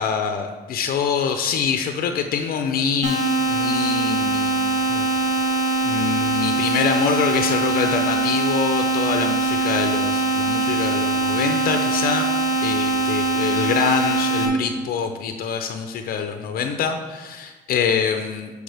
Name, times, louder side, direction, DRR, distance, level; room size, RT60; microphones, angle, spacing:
voice 1, 0.0-3.2 3.5-4.6 4.9-5.1 5.8-12.3 12.6-18.5, left 6 dB, 60° left, 6 dB, 0.6 m, -25 dB
sound 1, 3.0-14.5, right 3 dB, 45° right, 2.0 m, -22 dB
10.0 x 5.0 x 3.4 m, 1.3 s
cardioid pair, 110°, 17 cm